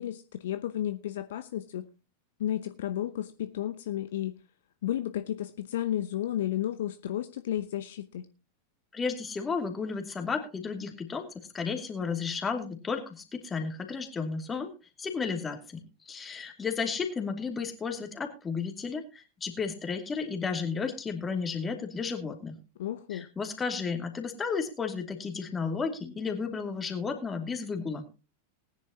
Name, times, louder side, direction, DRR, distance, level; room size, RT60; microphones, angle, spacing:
voice 1, 0.0-1.8 2.4-4.4 4.8-8.3 22.8-23.3, left 12 dB, 60° left, 0.8 m, -32 dB
voice 2, 8.9-11.3 11.5-14.7 15.0-22.6 23.1-28.0, left 5 dB, 15° left, 2.5 m, -33 dB
19.0 x 10.5 x 2.9 m
figure-of-eight pair, 90°, 0 cm